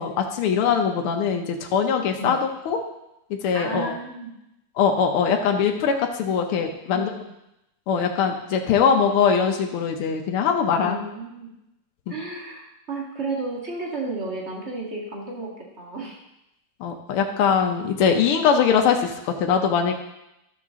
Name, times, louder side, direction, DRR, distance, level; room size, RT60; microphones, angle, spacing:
voice 1, 0.0-2.8 3.3-3.9 4.8-7.1 7.9-11.0 16.8-19.9, left 6 dB, 80° left, 3 dB, 1.8 m, -22 dB
voice 2, 3.5-4.3 6.9-7.1 10.8-11.5 12.1-16.2, right 2 dB, 30° right, -2 dB, 2.0 m, -32 dB
12.5 x 7.0 x 3.7 m, 0.87 s
omnidirectional pair, 2.4 m